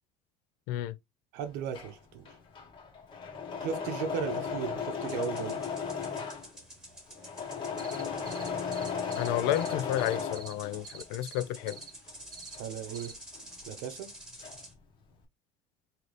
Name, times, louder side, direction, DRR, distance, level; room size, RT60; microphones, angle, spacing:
voice 1, 1.3-2.3 3.6-5.6 12.6-13.1 13.7-14.1, right 8 dB, 75° right, 0.7 m, -36 dB
Engine / Mechanisms, 1.5-11.1 11.4-13.8 14.0-14.8, left 6 dB, 30° left, 0.9 m, -36 dB
sound 1, 5.0-14.7, right 1 dB, 5° right, 1.1 m, -49 dB
sound 2, 7.8-9.3 9.5-10.5 10.8-11.4 11.7-11.9 12.3-12.6 12.9-13.1, right 7 dB, 25° right, 0.4 m, -46 dB
voice 2, 9.1-11.8, left 13 dB, 85° left, 0.5 m, -31 dB
3.9 x 2.8 x 3.1 m
cardioid pair, 170°, 17 cm